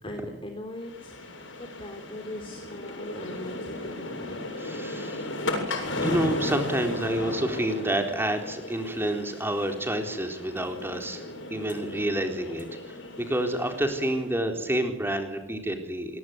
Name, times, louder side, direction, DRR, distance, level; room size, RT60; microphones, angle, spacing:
voice 1, 0.0-4.4, left 1 dB, 30° left, 3 dB, 3.3 m, -40 dB
sound 1, 0.8-14.3, left 2 dB, 80° left, 7.4 m, -35 dB
voice 2, 4.6-5.3 5.7-11.2 11.5-16.2, right 1 dB, 10° right, 4 dB, 4.0 m, -29 dB
26.5 x 21.0 x 9.4 m, 0.95 s
head